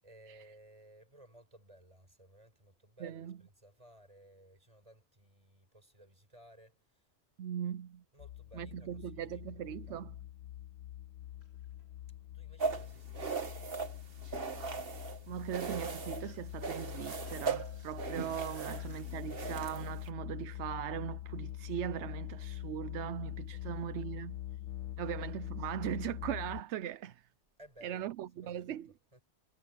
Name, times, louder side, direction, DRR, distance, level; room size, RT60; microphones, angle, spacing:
voice 1, 0.0-7.1 8.1-10.0 12.3-13.5 23.5-23.8 24.8-25.1 27.6-28.8 29.1-29.2, right 1 dB, 30° right, 7.8 m, -59 dB
voice 2, 3.0-3.4 7.4-8.0 8.5-10.1 14.3-14.4 15.3-24.4 25.0-27.3 27.8-28.9, right 10 dB, 85° right, 0.9 m, -39 dB
sound 1, 8.2-26.6, left 12 dB, 85° left, 1.0 m, -44 dB
sound 2, 11.2-13.2 13.4-19.0, left 2 dB, 65° left, 5.0 m, -65 dB
sound 3, 12.6-15.2 15.5-16.3 16.6-20.1, right 5 dB, 55° right, 1.6 m, -38 dB
omnidirectional pair, 1.1 m